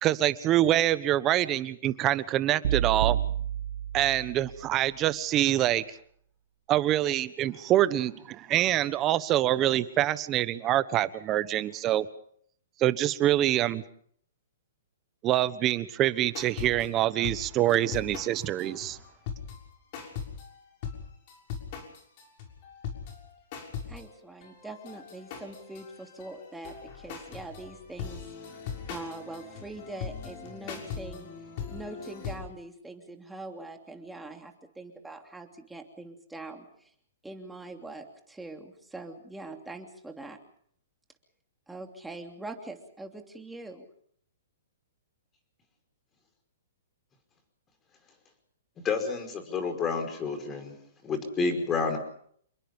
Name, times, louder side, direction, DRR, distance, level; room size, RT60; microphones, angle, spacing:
voice 1, 0.0-3.2 3.9-5.8 6.7-12.1 12.8-13.8 15.2-19.0, right 13 dB, 25° right, 14 dB, 1.2 m, -25 dB
sound 1, 2.6-4.9, right 10 dB, 60° right, 1.7 m, -30 dB
sound 2, 16.3-16.9 17.2-19.7 19.9-20.6 20.8-21.0 21.3-32.4, left 7 dB, 40° left, 6.4 m, -40 dB
voice 2, 23.8-28.2 28.9-31.3 31.7-36.9 37.2-40.4 41.7-43.9, right 2 dB, 5° right, 4 dB, 2.9 m, -43 dB
voice 3, 48.8-50.8 51.0-52.0, left 4 dB, 15° left, 6 dB, 5.2 m, -29 dB
28.5 x 21.5 x 5.4 m, 0.63 s
hypercardioid pair, 155°, 0 cm